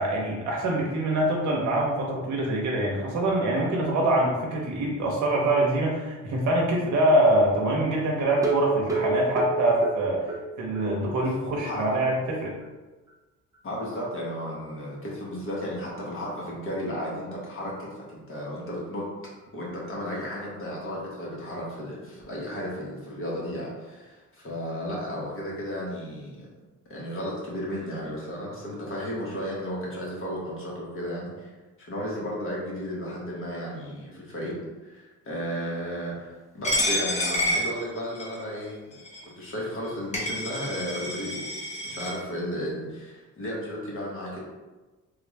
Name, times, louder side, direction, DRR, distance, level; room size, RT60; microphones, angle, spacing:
voice 1, 0.0-10.2 10.6-12.5, right 1 dB, 75° right, -2 dB, 0.8 m, -24 dB
sound 1, 8.4-10.9 11.2-11.3 11.7-11.8 12.2-12.3, right 4 dB, 10° right, 0.6 m, -29 dB
voice 2, 11.5-12.0 13.6-19.1 19.5-26.5 26.9-31.5 31.8-39.0 39.4-41.4 41.8-44.4, equal, 45° left, -5 dB, 1.3 m, -34 dB
Coin (dropping), 36.6-38.4 39.1-39.2 39.8-39.9 40.1-42.1, left 1 dB, 25° left, 1.1 m, -28 dB
3.4 x 2.4 x 3.3 m, 1.2 s
cardioid pair, 90°, 30 cm